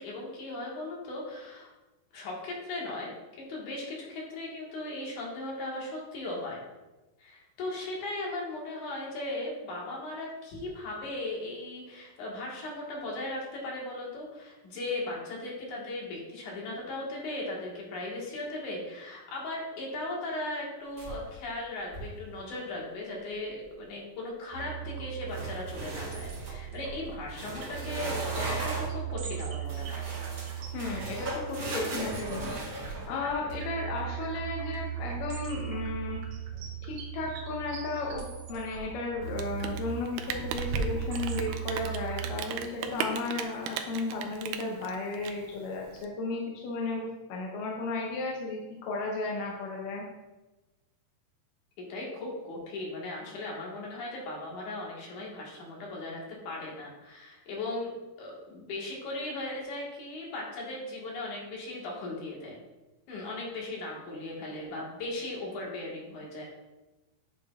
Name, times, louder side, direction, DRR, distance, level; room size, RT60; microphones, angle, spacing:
voice 1, 0.0-1.7 2.1-3.1 3.4-6.6 7.2-30.1 51.8-57.9 58.2-62.6 63.1-66.5, left 2 dB, 60° left, -3 dB, 2.5 m, -37 dB
sound 1, 21.0-21.4 21.8-22.2 25.3-26.6 27.3-29.0 29.7-33.5, right 1 dB, 45° right, 1.5 m, -38 dB
sound 2, 24.5-42.4, right 9 dB, 65° right, 2.7 m, -38 dB
voice 2, 30.7-36.2 36.8-50.0, left 3 dB, 80° left, -1 dB, 1.9 m, -34 dB
Rain, 39.2-46.0, right 6 dB, 80° right, 2.4 m, -36 dB
9.4 x 6.0 x 2.4 m, 1.1 s
omnidirectional pair, 4.9 m